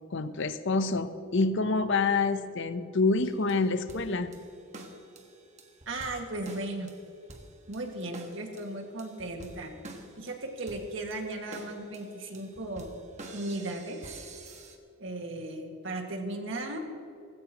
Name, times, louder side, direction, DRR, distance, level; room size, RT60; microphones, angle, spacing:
voice 1, 0.1-4.3, left 3 dB, 60° left, 11 dB, 0.8 m, -27 dB
sound 1, 3.2-14.8, right 2 dB, 35° right, 1.5 m, -49 dB
voice 2, 5.9-6.9 7.7-9.7 10.2-12.9 13.3-14.2 15.0-16.8, right 2 dB, 65° right, 2 dB, 2.0 m, -36 dB
19.0 x 16.5 x 3.0 m, 2.7 s
head